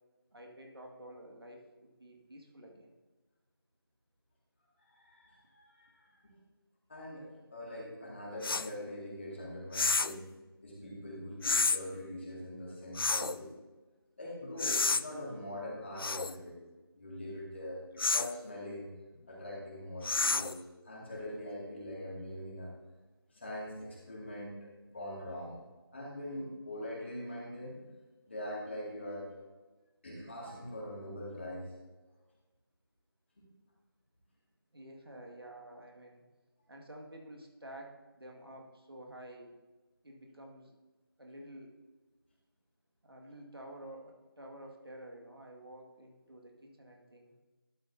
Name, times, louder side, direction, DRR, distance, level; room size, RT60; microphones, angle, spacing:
voice 1, 0.3-2.9 34.7-36.2 36.7-39.5 40.0-40.7 41.2-41.7 43.0-47.4, right 1 dB, 75° right, 1 dB, 2.0 m, -50 dB
voice 2, 4.8-6.3 6.9-10.3 10.6-13.6 14.2-16.5 16.9-18.9 19.3-22.7 23.3-25.6 25.9-27.7 28.3-29.3 30.0-31.7, left 1 dB, 30° left, -5 dB, 2.3 m, -43 dB
sound 1, 8.4-8.7 9.7-10.2 11.4-11.8 13.0-13.4 14.6-15.0 16.0-16.3 18.0-18.3 20.0-20.6, left 4 dB, 70° left, 0.4 m, -29 dB
12.0 x 8.5 x 2.8 m, 1.2 s
figure-of-eight pair, 170°, 13 cm